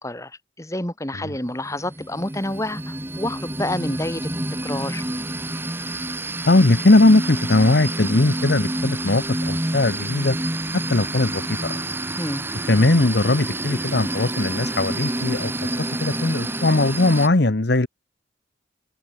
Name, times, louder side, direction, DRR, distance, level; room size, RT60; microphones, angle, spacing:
voice 1, 0.0-4.3 4.6-5.0 12.2-12.4, left 1 dB, 15° left, 4.6 m, -28 dB
sound 1, 1.4-17.3, right 1 dB, 10° right, 1.1 m, -28 dB
voice 2, 6.5-10.4 10.7-11.8 12.7-17.9, left 2 dB, 60° left, 1.1 m, -19 dB
open air
head